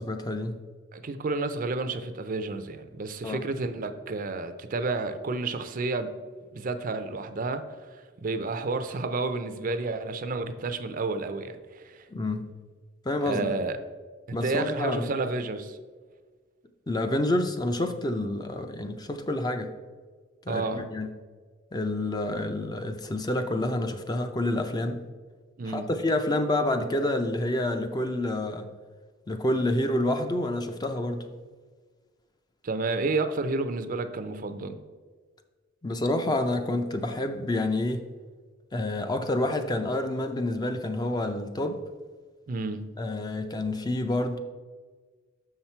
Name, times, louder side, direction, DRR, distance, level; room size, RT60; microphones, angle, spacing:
voice 1, 0.1-0.6 3.2-3.4 12.1-12.5 13.1-13.5 14.3-15.1 16.9-19.7 20.5-21.1 21.7-25.0 25.7-28.7 29.3-31.2 35.8-38.1 38.7-41.8 43.0-44.4, left 1 dB, 20° left, 7 dB, 0.4 m, -28 dB
voice 2, 0.9-6.1 6.5-7.6 7.9-12.1 13.2-13.8 14.3-15.8 20.5-20.8 25.6-25.9 32.6-34.8 42.5-42.8, right 3 dB, 45° right, 10 dB, 0.5 m, -31 dB
6.4 x 5.7 x 4.4 m, 1.5 s
head